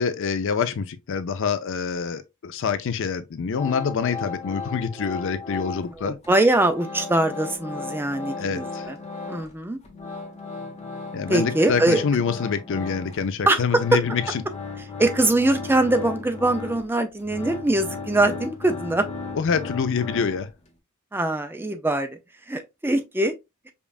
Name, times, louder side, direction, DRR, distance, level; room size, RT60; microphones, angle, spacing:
voice 1, 0.0-6.2 8.4-8.9 11.1-14.4 19.3-20.5, left 6 dB, 60° left, 0.5 m, -26 dB
sound 1, 3.5-6.0 6.2-9.6 9.8-20.7, left 4 dB, 30° left, 0.9 m, -36 dB
voice 2, 6.0-9.0 9.3-9.8 11.3-12.0 13.5-13.6 15.0-19.1 21.1-22.2 22.5-23.3, right 2 dB, 10° right, 0.4 m, -22 dB
5.2 x 2.4 x 2.3 m
head